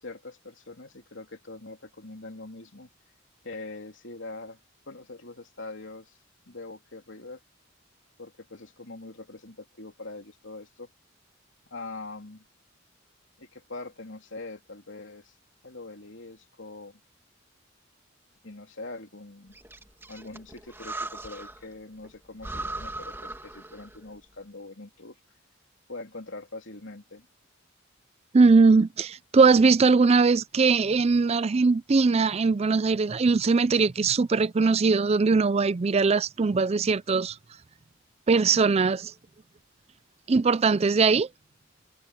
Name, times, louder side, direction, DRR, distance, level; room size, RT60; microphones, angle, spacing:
voice 1, 0.0-2.9 3.4-4.6 4.9-6.2 6.4-7.4 8.2-10.9 11.7-12.4 13.4-15.3 15.6-17.0 18.4-19.6 20.1-25.2 25.9-27.3, left 2 dB, 65° left, 3.4 m, -43 dB
Breathing, 19.5-21.7 22.0-22.1 22.4-24.1, right 2 dB, 10° right, 2.5 m, -38 dB
voice 2, 28.3-37.4 38.3-39.1 40.3-41.3, right 4 dB, 30° right, 0.4 m, -21 dB
head